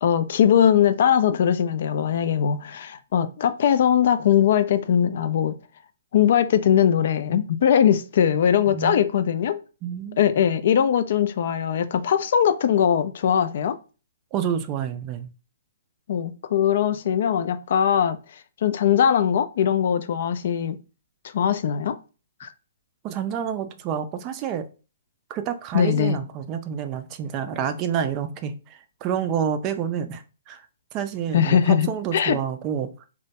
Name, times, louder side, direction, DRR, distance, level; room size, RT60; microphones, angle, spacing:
voice 1, 0.0-5.6 6.1-9.6 10.2-13.8 16.1-20.8 21.2-22.0 22.4-22.5 25.7-26.2 31.3-32.4, left 9 dB, 60° left, 0.3 m, -21 dB
voice 2, 8.7-9.1 9.8-10.2 14.3-15.3 23.0-24.7 25.3-30.6 30.9-33.1, right 8 dB, 30° right, 0.3 m, -28 dB
2.1 x 2.1 x 2.8 m
hypercardioid pair, 135°, 0 cm